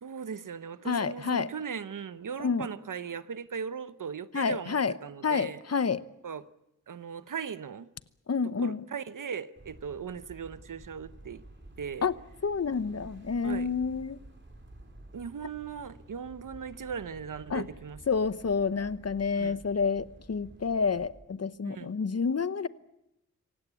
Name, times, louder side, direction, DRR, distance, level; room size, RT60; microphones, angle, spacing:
voice 1, 0.0-5.6 6.2-6.4 6.9-7.9 8.4-11.4 11.8-12.1 13.4-13.7 15.1-18.0 19.4-19.6 21.6-21.9, right 6 dB, 90° right, 14 dB, 1.0 m, -38 dB
voice 2, 0.9-1.5 2.4-2.7 4.3-4.9 5.2-6.0 8.3-8.8 12.0-12.1 12.4-14.2 17.5-17.6 18.1-22.7, left 5 dB, 55° left, 15 dB, 0.9 m, -29 dB
sound 1, 9.6-21.1, right 1 dB, 35° right, 5.2 m, -51 dB
26.0 x 17.0 x 8.3 m, 0.86 s
wide cardioid pair, 110°, 31 cm